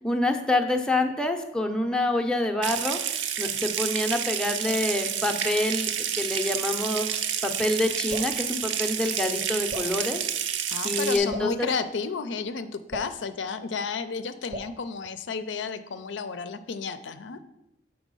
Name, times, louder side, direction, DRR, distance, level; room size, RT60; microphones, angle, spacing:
voice 1, 0.0-3.0 3.4-10.2 10.8-11.7, left 2 dB, 5° left, 3 dB, 0.6 m, -27 dB
Water tap faucet / Sink (filling or washing) / Trickle dribble, 2.6-11.2, right 9 dB, 75° right, 0.5 m, -29 dB
Drip, 8.1-8.4 9.7-10.0 11.3-11.6 12.9-13.2 14.5-14.8, right 1 dB, 40° right, 0.7 m, -37 dB
voice 2, 10.6-17.4, left 5 dB, 75° left, 11 dB, 0.5 m, -32 dB
6.1 x 4.8 x 5.3 m, 0.87 s
head